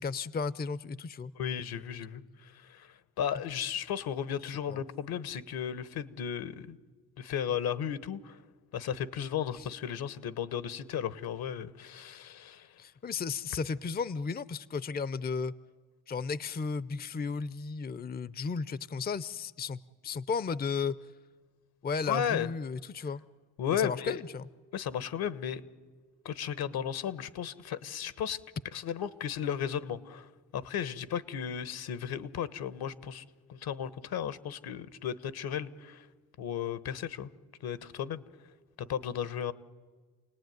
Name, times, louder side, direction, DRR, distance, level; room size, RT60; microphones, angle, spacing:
voice 1, 0.0-1.3 4.4-4.8 9.6-9.7 12.8-15.5 16.1-21.0 21.8-23.2 23.7-24.5, left 5 dB, 25° left, 0.7 m, -34 dB
voice 2, 1.3-6.8 7.2-8.4 8.7-12.8 22.1-22.5 23.6-24.2 24.7-25.6 26.2-28.4 28.7-33.2 33.5-36.1 36.4-37.3 37.6-38.2 38.8-39.5, left 8 dB, 65° left, 1.2 m, -35 dB
29.0 x 18.5 x 9.4 m
supercardioid pair, 65°, 39 cm